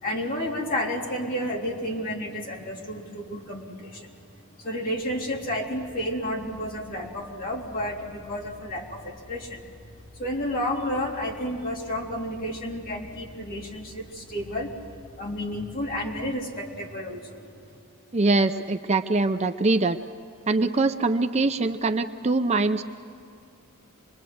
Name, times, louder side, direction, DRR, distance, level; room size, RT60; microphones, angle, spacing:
voice 1, 0.0-4.1 4.6-9.6 10.2-14.7 15.2-17.5, left 1 dB, 40° left, -2 dB, 3.4 m, -31 dB
sound 1, 4.9-16.3, left 3 dB, 70° left, 7.8 m, -51 dB
voice 2, 18.1-20.0 20.5-22.8, right 3 dB, 30° right, 8 dB, 0.6 m, -23 dB
26.0 x 21.5 x 7.9 m, 2.5 s
head